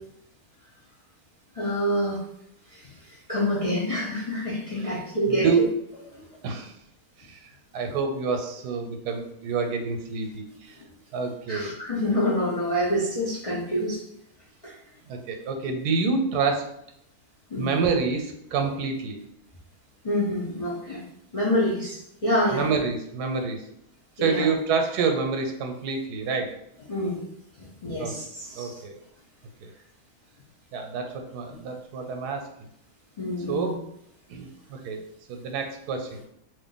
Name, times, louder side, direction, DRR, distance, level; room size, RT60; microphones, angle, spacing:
voice 1, 1.5-2.2 2.7-2.9 3.3-5.5 6.1-6.2 11.5-14.0 14.6-14.7 17.5-17.7 20.0-21.0 21.3-22.7 24.2-24.4 26.9-27.2 27.6-28.7 33.2-33.7, left 1 dB, 40° left, -6 dB, 0.4 m, -27 dB
voice 2, 7.2-10.8 11.1-11.7 15.1-16.7 17.6-19.2 22.5-23.6 24.2-26.5 28.0-28.1 28.6-29.0 29.6-29.7 30.7-32.5 33.5-33.8 34.3-35.0 35.3-36.2, right 5 dB, 85° right, 5 dB, 1.2 m, -28 dB
2.6 x 2.5 x 3.8 m, 0.77 s
omnidirectional pair, 1.6 m